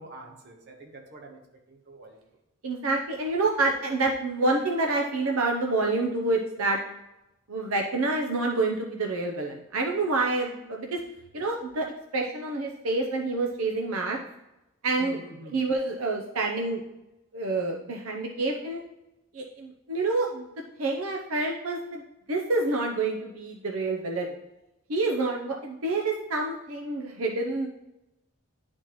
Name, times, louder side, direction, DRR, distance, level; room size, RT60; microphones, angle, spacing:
voice 1, 0.0-1.4 1.7-2.2 15.0-15.6, right 2 dB, 50° right, 1.2 m, -46 dB
voice 2, 2.6-6.8 7.5-11.0 11.3-11.9 12.1-14.2 14.8-15.2 15.5-16.8 17.3-18.8 19.3-20.5 20.8-22.0 22.3-24.4 24.9-27.7, right 2 dB, 80° right, 0.7 m, -27 dB
10.5 x 4.3 x 3.1 m
head